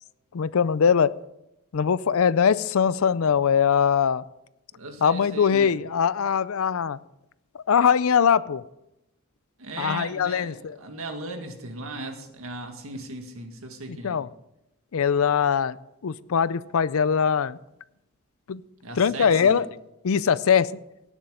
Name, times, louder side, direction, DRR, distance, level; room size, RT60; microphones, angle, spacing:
voice 1, 0.3-1.1 1.7-4.2 5.0-7.0 7.5-8.6 9.8-10.8 13.9-14.3 14.9-15.8 16.0-17.6 18.5-18.6 19.0-19.7 20.0-20.7, left 7 dB, 70° left, 18 dB, 0.5 m, -22 dB
voice 2, 4.7-5.8 9.6-14.2 18.8-19.6, right 2 dB, 70° right, 5 dB, 1.9 m, -37 dB
18.0 x 7.3 x 5.1 m, 0.88 s
head